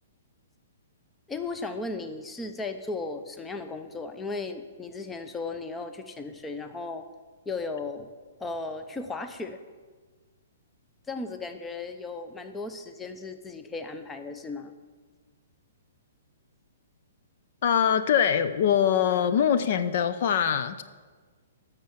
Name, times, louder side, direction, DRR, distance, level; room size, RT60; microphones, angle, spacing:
voice 1, 1.3-7.1 7.5-8.1 8.4-9.6 11.1-14.7, left 3 dB, 10° left, 8 dB, 0.7 m, -36 dB
voice 2, 17.6-20.8, left 8 dB, 55° left, 11 dB, 0.6 m, -23 dB
10.0 x 6.6 x 7.4 m, 1.4 s
hypercardioid pair, 140°, 0 cm